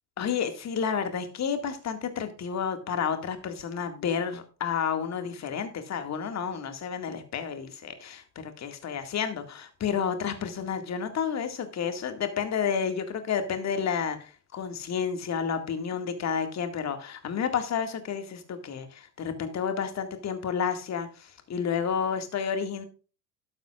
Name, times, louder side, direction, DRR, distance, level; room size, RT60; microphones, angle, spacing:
voice 1, 0.2-22.8, left 7 dB, 30° left, 7 dB, 2.0 m, -30 dB
12.5 x 12.0 x 2.4 m, 0.35 s
figure-of-eight pair, 70°, 50 cm